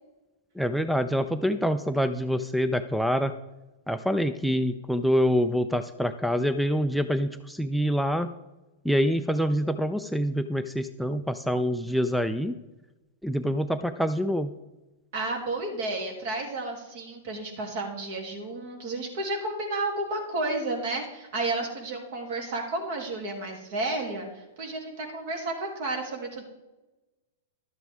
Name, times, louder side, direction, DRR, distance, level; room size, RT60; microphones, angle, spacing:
voice 1, 0.6-3.3 3.9-8.3 8.8-12.5 13.2-14.5, equal, ahead, 11 dB, 0.4 m, -26 dB
voice 2, 15.1-26.4, right 2 dB, 60° right, 1 dB, 2.8 m, -32 dB
12.5 x 8.0 x 3.6 m, 1.1 s
hypercardioid pair, 120°, 0 cm